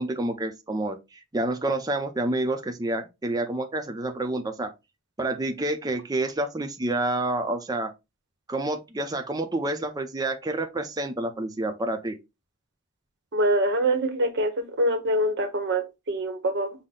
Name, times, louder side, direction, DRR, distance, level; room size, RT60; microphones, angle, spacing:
voice 1, 0.0-4.7 5.2-7.9 8.5-12.2, right 2 dB, 20° right, 0.5 m, -28 dB
voice 2, 13.3-16.7, right 1 dB, 55° right, 0.9 m, -25 dB
5.6 x 2.1 x 3.7 m
head